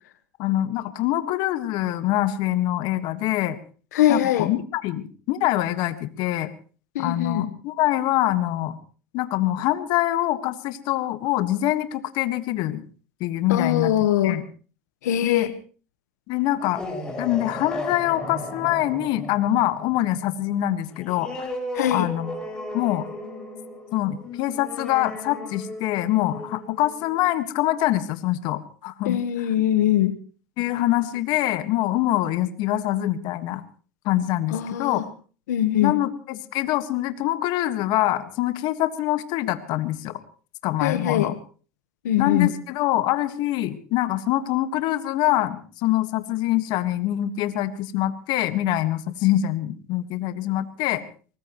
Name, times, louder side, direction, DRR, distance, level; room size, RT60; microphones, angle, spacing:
voice 1, 0.4-3.6 4.1-6.5 7.0-8.7 9.1-12.8 13.2-13.9 14.2-14.4 15.2-15.5 16.3-16.8 17.2-21.5 21.9-22.3 22.7-23.1 23.9-29.5 30.6-33.6 34.0-35.0 35.8-40.1 40.6-41.4 42.2-51.0, left 14 dB, 55° left, 11 dB, 1.6 m, -24 dB
voice 2, 3.9-4.5 6.9-7.5 13.5-14.4 15.0-15.5 21.7-22.1 29.0-30.1 34.5-35.0 35.5-36.0 40.8-41.3 42.0-42.5, left 11 dB, 85° left, 10 dB, 1.3 m, -22 dB
sound 1, 16.5-27.7, left 1 dB, 10° left, 5.9 m, -36 dB
23.5 x 19.5 x 3.1 m, 0.40 s
supercardioid pair, 110°, 9 cm